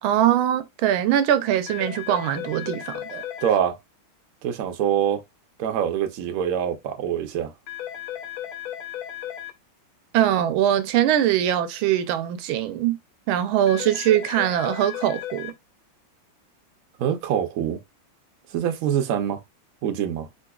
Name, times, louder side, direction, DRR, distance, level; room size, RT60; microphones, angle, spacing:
voice 1, 0.0-3.2 10.1-13.0 13.3-15.5, right 11 dB, 85° right, 1.4 m, -22 dB
sound 1, 1.7-3.5 7.7-9.5 13.7-15.5, left 11 dB, 80° left, 1.5 m, -35 dB
voice 2, 3.4-3.8 4.4-5.2 5.6-7.5 17.0-17.8 18.5-19.4 19.8-20.3, right 9 dB, 70° right, 0.8 m, -24 dB
3.8 x 2.9 x 2.3 m
omnidirectional pair, 2.2 m